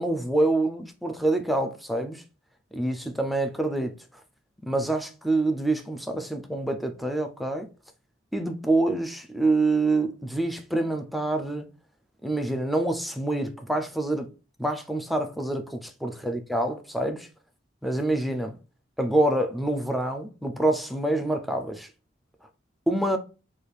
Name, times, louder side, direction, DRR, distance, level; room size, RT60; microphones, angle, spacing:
voice 1, 0.0-2.2 2.7-4.0 4.6-7.7 8.3-11.7 12.2-14.3 14.6-17.3 17.8-18.6 19.0-21.9 22.9-23.2, right 2 dB, ahead, 0.4 m, -26 dB
3.3 x 2.4 x 4.3 m
head